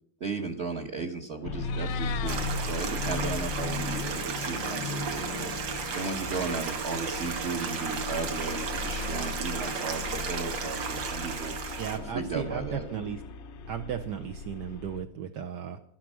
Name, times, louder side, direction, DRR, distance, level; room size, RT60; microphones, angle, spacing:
voice 1, 0.2-5.5 5.9-11.5 12.1-12.9, right 4 dB, 40° right, 5 dB, 1.2 m, -35 dB
Meow, 1.4-2.4, left 9 dB, 75° left, 1.5 m, -38 dB
sound 1, 1.4-15.0, left 4 dB, 55° left, 0.8 m, -37 dB
Stream, 2.3-12.0, right 5 dB, 90° right, 2.1 m, -34 dB
voice 2, 11.8-13.2 13.7-15.8, right 9 dB, 70° right, 5 dB, 1.4 m, -35 dB
12.0 x 10.5 x 6.2 m, 0.66 s
omnidirectional pair, 2.0 m